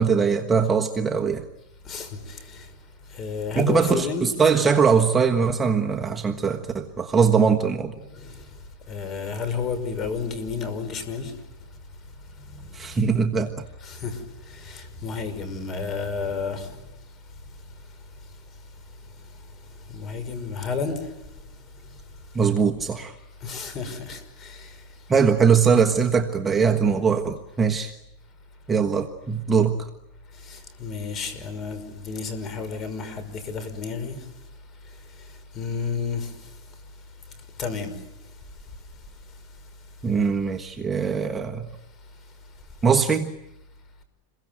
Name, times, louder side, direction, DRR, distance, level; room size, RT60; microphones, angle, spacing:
voice 1, 0.0-1.4 3.5-7.9 12.7-13.6 22.3-23.1 25.1-27.9 28.7-29.9 40.0-41.7 42.8-43.3, right 6 dB, 15° right, 1.4 m, -21 dB
voice 2, 1.9-2.7 3.2-4.3 8.2-8.4 8.9-11.3 13.8-14.2 14.6-16.7 19.9-20.9 23.4-24.7 30.5-34.2 35.6-36.3 37.6-37.9, left 5 dB, 30° left, 5.6 m, -31 dB
28.0 x 22.5 x 9.3 m
supercardioid pair, 145°, 0 cm